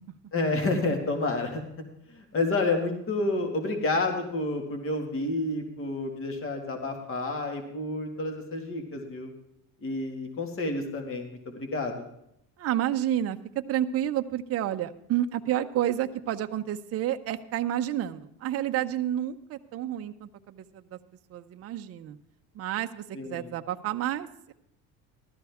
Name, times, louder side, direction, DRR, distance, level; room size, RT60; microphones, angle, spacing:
voice 1, 0.3-1.6 2.1-9.3 9.8-12.0 23.1-23.5, left 2 dB, 35° left, 4 dB, 2.0 m, -29 dB
voice 2, 12.6-21.0 21.3-22.2 22.5-24.5, right 11 dB, 40° right, 7 dB, 0.6 m, -30 dB
15.5 x 12.5 x 3.5 m, 0.77 s
cardioid pair, 125°, 39 cm